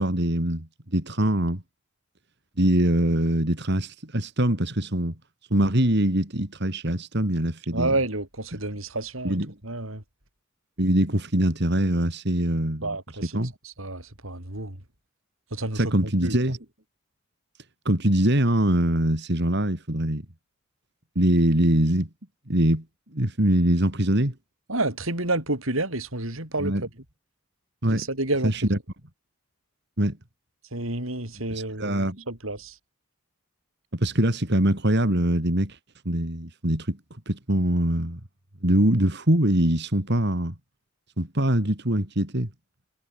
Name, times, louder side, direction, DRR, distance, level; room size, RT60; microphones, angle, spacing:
voice 1, 0.0-1.6 2.6-5.1 5.5-7.9 8.5-8.6 9.2-9.5 10.8-13.5 15.7-16.6 17.8-20.2 21.1-22.1 22.5-22.8 23.1-24.3 26.6-26.8 27.8-28.1 28.4-28.8 30.0-30.2 31.5-32.2 33.9-35.8 36.0-37.0 37.2-38.2 38.6-40.5 41.2-42.5, right 1 dB, 55° right, 3.3 m, -23 dB
voice 2, 7.7-9.4 9.6-10.0 12.8-13.4 13.8-14.8 15.5-16.4 24.7-26.7 27.9-28.7 30.7-32.7, right 2 dB, 75° right, 6.5 m, -29 dB
head